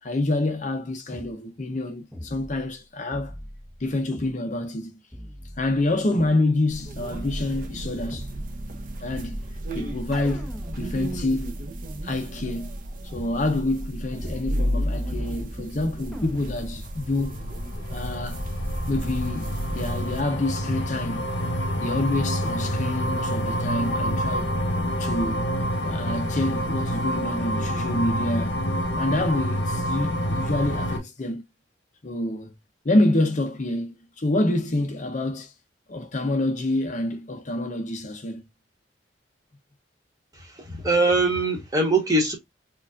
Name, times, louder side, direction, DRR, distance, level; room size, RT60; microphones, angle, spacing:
voice 1, 0.0-3.3 3.8-5.0 5.6-8.3 9.0-9.4 9.7-11.5 12.0-12.8 13.1-17.4 17.9-18.5 18.9-21.3 21.7-24.5 25.0-25.5 25.8-28.6 29.0-31.4 32.0-32.5 32.8-35.5 35.9-38.4, left 2 dB, 40° left, 0.7 m, -27 dB
sound 1, 1.1-1.3 2.1-2.8 3.1-4.3 5.1-6.3 7.1-8.3 9.1-11.3 12.1-12.2 13.1-13.3 14.1-14.8 15.1-15.7 16.1-16.7, equal, ahead, 0.8 m, -41 dB
sound 2, 6.7-20.2, equal, 45° right, 0.7 m, -33 dB
sound 3, 16.6-31.0, equal, 75° left, 1.0 m, -28 dB
voice 2, 40.3-42.3, right 2 dB, 20° right, 1.2 m, -22 dB
4.6 x 2.4 x 2.4 m
head